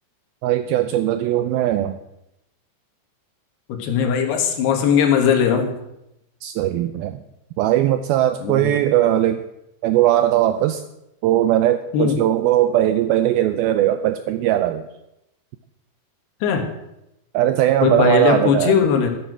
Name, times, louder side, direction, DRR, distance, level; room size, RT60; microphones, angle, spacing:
voice 1, 0.4-2.0 6.4-7.2 7.6-9.4 9.8-10.8 11.2-14.9 17.3-18.8, right 12 dB, 85° right, 10 dB, 2.1 m, -19 dB
voice 2, 3.7-5.7 8.4-8.8 11.9-12.2 16.4-16.7 17.8-19.1, left 7 dB, 75° left, 4 dB, 3.5 m, -19 dB
12.5 x 8.5 x 6.1 m, 0.86 s
omnidirectional pair, 4.9 m